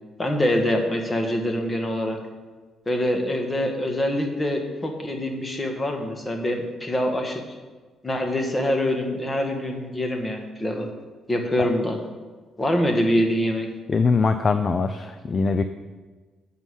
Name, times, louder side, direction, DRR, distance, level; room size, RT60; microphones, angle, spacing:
voice 1, 0.2-2.2 2.8-7.6 8.0-10.9 11.3-12.0 12.6-13.7, left 1 dB, 20° left, 3 dB, 1.6 m, -25 dB
voice 2, 13.9-15.6, left 4 dB, 35° left, 9 dB, 0.4 m, -22 dB
9.0 x 5.6 x 6.3 m, 1.4 s
cardioid pair, 90°, 0 cm